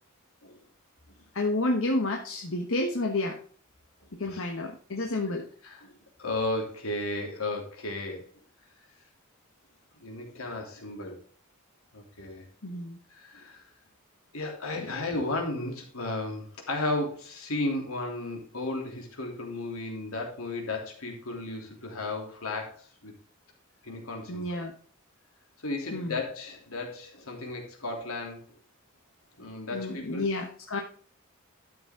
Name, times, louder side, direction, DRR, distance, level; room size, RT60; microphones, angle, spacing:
voice 1, 1.3-3.4 4.1-5.5 12.6-13.0 14.7-14.9 24.3-24.7 25.9-26.2 29.7-30.8, left 2 dB, 70° left, 3 dB, 1.2 m, -30 dB
voice 2, 6.2-8.2 10.0-11.2 11.9-12.5 13.1-13.6 14.3-23.1 23.8-24.6 25.6-28.4 29.4-30.2, left 2 dB, 85° left, 1 dB, 3.2 m, -34 dB
12.5 x 6.9 x 3.7 m, 0.43 s
head